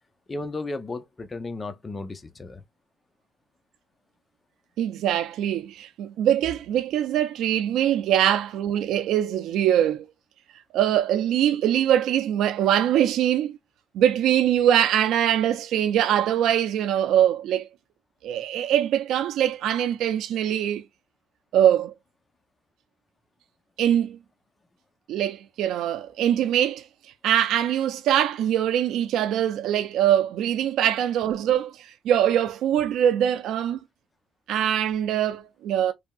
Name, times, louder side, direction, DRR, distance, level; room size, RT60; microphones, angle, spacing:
voice 1, 0.3-2.6 20.5-20.6, left 2 dB, 30° left, 0.6 m, -34 dB
voice 2, 4.8-10.0 10.7-13.6 13.9-17.7 18.2-20.8 21.5-21.9 23.8-24.2 25.1-26.9 27.2-33.8 34.5-35.9, right 10 dB, 85° right, 0.4 m, -23 dB
3.4 x 2.7 x 2.3 m
cardioid pair, 90°, 0 cm